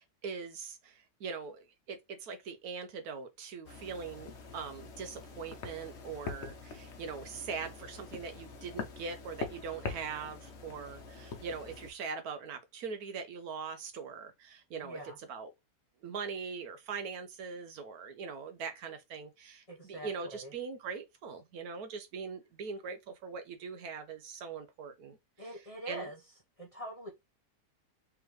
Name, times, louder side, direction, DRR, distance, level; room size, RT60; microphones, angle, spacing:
voice 1, 0.0-15.0 15.3-15.5 16.0-25.5 25.9-26.1, right 5 dB, 70° right, 1.2 m, -42 dB
sound 1, 3.6-11.9, left 4 dB, 50° left, 1.0 m, -44 dB
voice 2, 14.8-15.2 19.7-20.5 25.4-26.2 26.6-27.1, right 1 dB, 25° left, 0.9 m, -43 dB
3.5 x 3.5 x 3.1 m
omnidirectional pair, 1.7 m